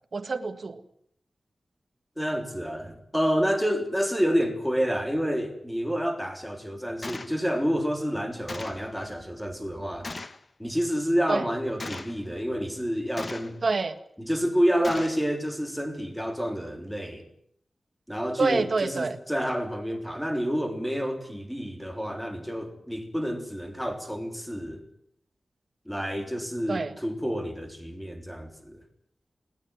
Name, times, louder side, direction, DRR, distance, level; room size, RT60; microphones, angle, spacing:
voice 1, 0.1-0.8 11.3-11.4 13.6-14.0 18.4-19.2 26.7-26.9, right 3 dB, 45° right, 8 dB, 1.7 m, -27 dB
voice 2, 2.2-10.1 10.6-13.6 14.2-17.2 18.1-24.8 25.9-28.8, equal, ahead, 6 dB, 3.6 m, -29 dB
Gunshot gunfire, 7.0-7.4 8.5-8.9 10.0-10.4 11.8-12.2 13.2-13.6 14.8-15.2, left 3 dB, 35° left, 1.3 m, -38 dB
21.0 x 18.0 x 9.6 m, 0.69 s
wide cardioid pair, 135°, 0 cm